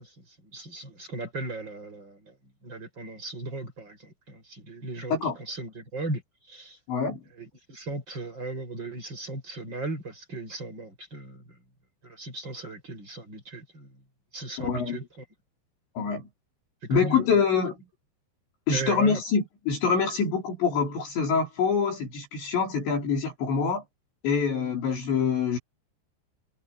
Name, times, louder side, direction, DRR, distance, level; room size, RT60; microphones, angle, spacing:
voice 1, 0.0-2.4 2.6-6.2 6.5-6.8 7.4-11.6 12.0-14.0 14.3-15.2 16.8-17.4 18.7-19.2, right 2 dB, 25° right, 7.3 m, -37 dB
voice 2, 6.9-7.2 14.6-15.0 16.0-16.3 16.9-17.8 18.7-23.8 24.2-25.6, left 5 dB, 65° left, 7.7 m, -25 dB
omnidirectional pair, 5.5 m